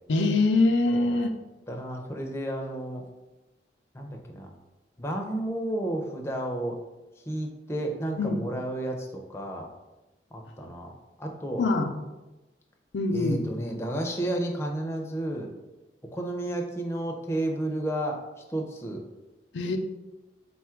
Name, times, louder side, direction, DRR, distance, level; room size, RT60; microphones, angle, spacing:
voice 1, 0.1-1.3 8.2-8.4 11.6-11.9 12.9-13.4 19.5-19.8, left 3 dB, 85° left, 5 dB, 0.4 m, -23 dB
voice 2, 1.7-3.0 3.9-4.5 5.0-6.7 7.3-9.7 10.3-10.9 11.2-11.6 13.1-15.5 16.1-18.2 18.5-19.0, right 1 dB, 15° left, 2 dB, 0.5 m, -32 dB
4.0 x 2.3 x 4.4 m, 1.1 s
head